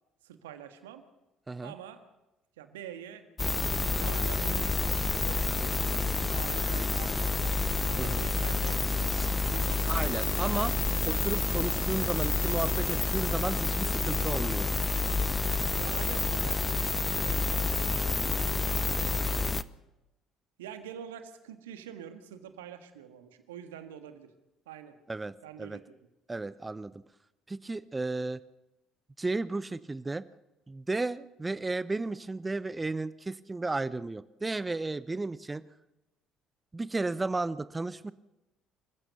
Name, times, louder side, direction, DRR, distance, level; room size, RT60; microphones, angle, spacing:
voice 1, 0.2-1.0 1.6-2.0 2.6-3.2 3.7-4.7 5.3-6.0 6.3-7.5 7.9-9.2 9.5-10.3 15.8-19.5 20.6-24.3 24.7-25.0 25.4-25.8, right 9 dB, 75° right, 9 dB, 1.6 m, -46 dB
sound 1, 3.4-19.6, left 3 dB, 20° left, 0.8 m, -29 dB
voice 2, 9.9-10.7 11.1-14.7 25.1-25.8 26.3-27.0 27.5-28.4 29.2-30.2 30.7-35.6 36.7-38.1, right 3 dB, 20° right, 18 dB, 0.7 m, -33 dB
26.5 x 15.5 x 7.0 m, 0.96 s
figure-of-eight pair, 55°, 0 cm